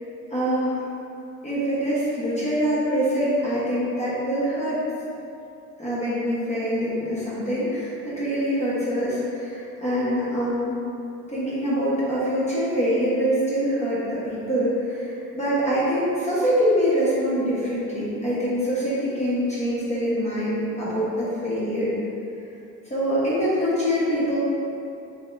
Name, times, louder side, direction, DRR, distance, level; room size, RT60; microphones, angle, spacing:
voice 1, 0.3-0.8 1.4-4.8 5.8-10.8 11.3-21.9 22.8-24.4, equal, 20° left, -10 dB, 1.2 m, -24 dB
3.5 x 2.8 x 3.4 m, 2.8 s
cardioid pair, 90°, 30 cm